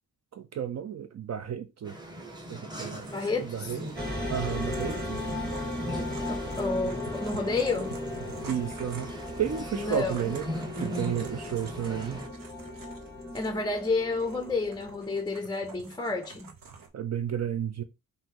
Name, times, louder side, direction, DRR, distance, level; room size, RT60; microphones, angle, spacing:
voice 1, 0.3-2.0 2.5-3.1 3.4-3.9 4.3-5.2 8.5-9.1 9.4-10.4 10.8-12.2 16.9-17.8, right 9 dB, 55° right, 0.5 m, -32 dB
sound 1, 1.8-12.3, equal, 15° right, 0.9 m, -40 dB
sound 2, 2.8-16.9, right 6 dB, 80° right, 1.0 m, -48 dB
voice 2, 3.1-3.8 6.3-8.0 9.7-10.3 13.3-16.5, left 3 dB, 15° left, 0.5 m, -30 dB
sound 3, 4.0-15.2, left 1 dB, 30° right, 2.0 m, -36 dB
5.6 x 2.6 x 2.9 m
wide cardioid pair, 135°, 33 cm